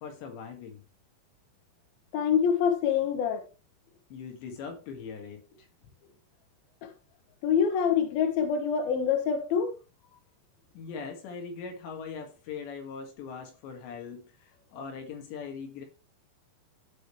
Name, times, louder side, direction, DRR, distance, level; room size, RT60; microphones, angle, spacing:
voice 1, 0.0-0.8 4.1-5.4 10.7-15.9, left 5 dB, 85° left, 4.2 m, -41 dB
voice 2, 2.1-3.4 6.8-6.9 7.4-9.7, left 7 dB, 70° left, 2.8 m, -25 dB
15.5 x 5.2 x 3.2 m
omnidirectional pair, 4.9 m